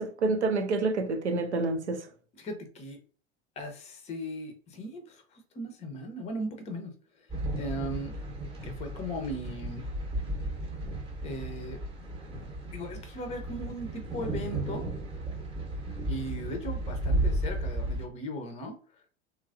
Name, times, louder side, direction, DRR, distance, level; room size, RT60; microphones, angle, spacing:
voice 1, 0.0-2.0, right 3 dB, 80° right, 0.6 m, -28 dB
voice 2, 2.4-3.0 3.6-5.2 5.5-6.9 7.6-8.1 8.6-9.9 11.2-11.8 12.7-14.9 16.1-18.8, equal, 20° left, 0.5 m, -37 dB
sound 1, 7.3-18.0, right 1 dB, 15° right, 0.8 m, -34 dB
3.0 x 2.3 x 2.4 m
figure-of-eight pair, 75°, 34 cm